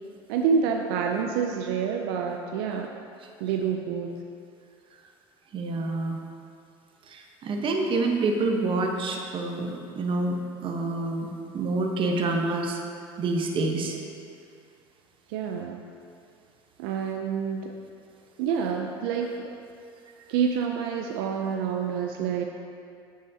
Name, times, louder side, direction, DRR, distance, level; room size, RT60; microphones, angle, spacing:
voice 1, 0.3-2.9 3.4-4.2 15.3-15.8 16.8-17.7 18.4-19.6 20.3-22.4, right 6 dB, 75° right, 2 dB, 0.5 m, -27 dB
voice 2, 5.5-6.2 7.1-10.4 10.6-12.8 13.2-14.0, right 3 dB, 45° right, 2 dB, 1.0 m, -27 dB
8.5 x 7.3 x 2.8 m, 2.4 s
hypercardioid pair, 85°, 13 cm